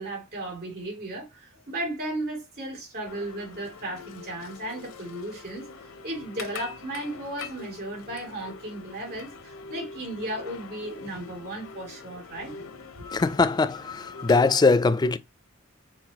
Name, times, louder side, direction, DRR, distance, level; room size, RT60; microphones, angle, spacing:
voice 1, 0.0-5.7 6.0-12.5 13.0-13.1, right 1 dB, 50° right, 2.4 m, -35 dB
sound 1, 3.0-14.6, left 4 dB, 75° left, 0.6 m, -43 dB
voice 2, 13.0-15.2, left 3 dB, 20° left, 0.3 m, -21 dB
4.4 x 2.3 x 4.1 m
head